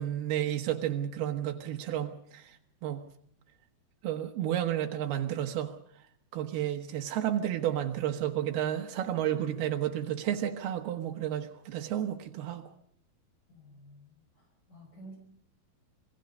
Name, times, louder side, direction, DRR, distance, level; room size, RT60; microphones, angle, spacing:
voice 1, 0.0-2.5 2.8-3.0 4.0-5.8 6.3-12.6, right 11 dB, 90° right, 3 dB, 3.2 m, -31 dB
voice 2, 13.5-15.2, right 1 dB, 60° left, 3 dB, 6.8 m, -52 dB
27.0 x 19.0 x 5.3 m, 0.66 s
omnidirectional pair, 4.4 m